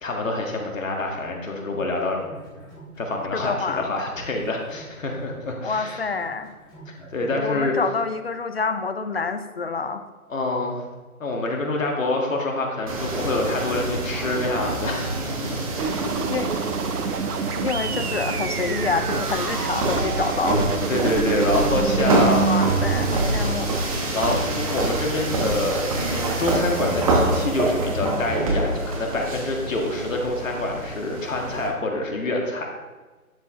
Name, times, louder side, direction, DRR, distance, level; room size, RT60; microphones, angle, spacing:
voice 1, 0.0-2.2 3.0-6.0 6.9-7.8 10.3-10.9 11.2-16.1 20.9-22.5 24.1-32.7, left 2 dB, 60° left, 1 dB, 1.9 m, -26 dB
sound 1, 1.7-3.4 3.7-7.4, right 2 dB, 10° left, 2.1 m, -46 dB
voice 2, 3.3-3.9 5.6-6.5 7.3-10.0 16.3-16.6 17.6-20.6 22.4-23.7, left 4 dB, 45° left, 10 dB, 0.5 m, -27 dB
sound 2, 12.9-31.7, right 2 dB, 25° right, 1.1 m, -26 dB
sound 3, 15.8-23.2, right 7 dB, 90° right, 0.7 m, -27 dB
11.0 x 4.7 x 3.6 m, 1.3 s
figure-of-eight pair, 150°, 44 cm